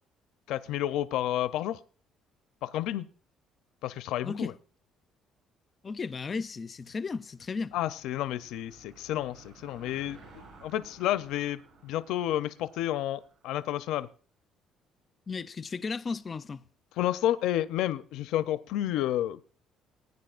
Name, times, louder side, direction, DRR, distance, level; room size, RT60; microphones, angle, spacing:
voice 1, 0.5-1.8 2.6-3.1 3.8-4.5 7.7-14.1 17.0-19.4, left 13 dB, 80° left, 0.5 m, -30 dB
voice 2, 4.2-4.5 5.8-7.7 15.3-16.6, left 4 dB, 25° left, 0.4 m, -35 dB
Car passing by / Engine, 6.9-13.7, right 3 dB, 55° right, 6.8 m, -56 dB
18.5 x 9.5 x 2.4 m
cardioid pair, 165°, 0 cm